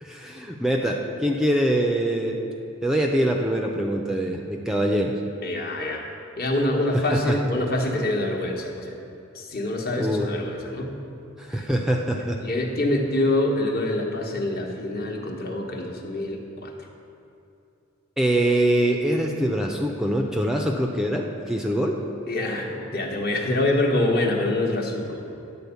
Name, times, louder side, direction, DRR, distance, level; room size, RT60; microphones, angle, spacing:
voice 1, 0.0-2.4 2.8-5.1 6.9-7.4 10.0-10.4 11.4-12.4 18.2-22.0, right 1 dB, 5° right, 1 dB, 0.5 m, -24 dB
voice 2, 5.4-6.1 6.4-9.0 9.3-11.0 11.5-11.6 12.4-16.7 22.3-25.2, left 1 dB, 50° left, 1 dB, 1.1 m, -25 dB
10.5 x 4.4 x 7.0 m, 2.7 s
head